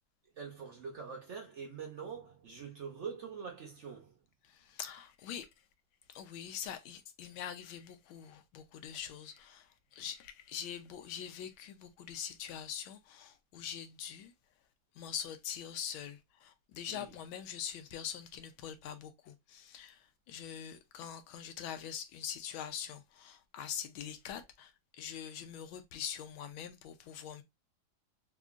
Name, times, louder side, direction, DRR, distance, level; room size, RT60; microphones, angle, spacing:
voice 1, 0.4-4.2 16.9-17.2, right 6 dB, 75° right, 0.6 m, -44 dB
voice 2, 4.5-5.5 6.1-14.3 15.0-24.7 25.0-27.4, left 9 dB, 85° left, 1.4 m, -43 dB
3.7 x 2.9 x 2.4 m
omnidirectional pair, 2.2 m